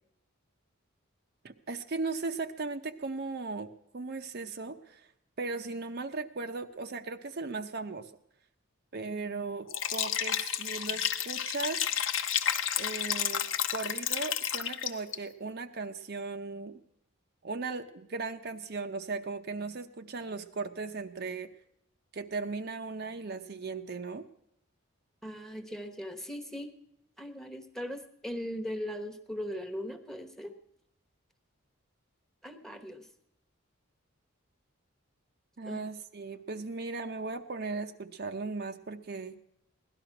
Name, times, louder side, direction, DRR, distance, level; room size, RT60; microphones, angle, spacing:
voice 1, 1.4-5.1 5.4-8.1 8.9-11.9 12.8-13.4 13.7-16.8 17.4-21.5 22.1-24.3 35.6-39.4, right 3 dB, 50° right, 7 dB, 0.7 m, -37 dB
Liquid, 9.7-15.2, left 9 dB, 65° left, 0.9 m, -31 dB
voice 2, 25.2-26.7 27.2-30.5 32.4-33.1 35.6-35.8, equal, ahead, 7 dB, 1.1 m, -39 dB
17.0 x 12.0 x 5.9 m, 0.78 s
head